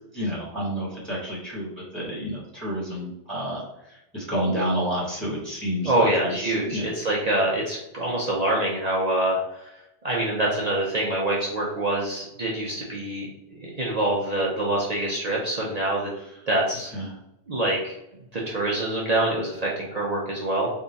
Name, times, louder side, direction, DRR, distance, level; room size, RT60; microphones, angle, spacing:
voice 1, 0.1-3.6 4.1-6.9 16.9-17.1, equal, 10° left, -6 dB, 1.2 m, -29 dB
voice 2, 5.8-9.7 10.0-13.3 13.6-16.1 16.5-16.9 17.5-17.9 18.3-20.7, right 1 dB, 40° right, -4 dB, 0.7 m, -25 dB
3.5 x 2.4 x 4.0 m, 0.86 s
omnidirectional pair, 1.2 m